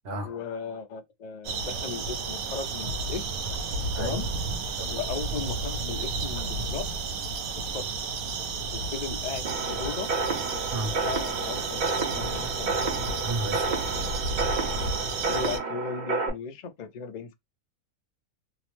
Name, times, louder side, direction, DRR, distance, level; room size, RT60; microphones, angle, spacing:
voice 1, 0.1-3.6 4.0-4.3 4.9-6.9 7.6-7.9 8.7-10.2 10.9-12.7 14.1-14.2 15.2-17.3, left 6 dB, 70° left, 0.4 m, -36 dB
sound 1, 1.4-15.6, right 4 dB, 85° right, 1.1 m, -32 dB
sound 2, 9.4-16.3, right 3 dB, 45° right, 0.6 m, -30 dB
voice 2, 13.2-13.8, right 2 dB, 65° right, 1.2 m, -32 dB
2.7 x 2.0 x 3.0 m
omnidirectional pair, 1.4 m